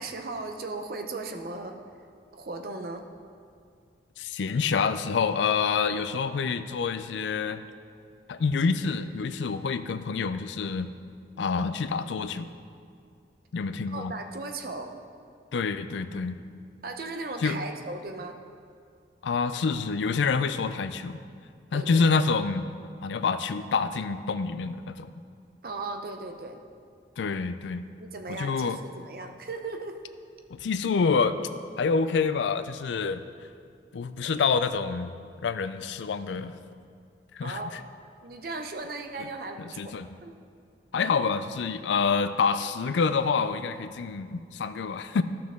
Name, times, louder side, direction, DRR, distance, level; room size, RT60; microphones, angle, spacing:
voice 1, 0.0-1.8 2.3-3.1 5.9-6.0 13.9-14.9 16.8-18.4 21.7-22.0 25.6-26.6 28.0-30.0 34.3-34.4 37.4-37.9 38.2-40.4, right 3 dB, 55° right, 5 dB, 0.7 m, -37 dB
voice 2, 4.2-7.6 8.3-10.9 11.4-12.5 13.5-14.1 15.5-16.4 17.4-17.6 19.2-21.2 21.7-22.7 23.0-25.1 27.2-27.8 28.3-28.8 30.5-31.4 31.8-33.2 33.9-35.1 35.4-36.5 37.3-37.8 39.6-40.1 40.9-45.2, left 5 dB, 80° left, 11 dB, 0.4 m, -27 dB
13.5 x 5.8 x 3.6 m, 2.3 s
head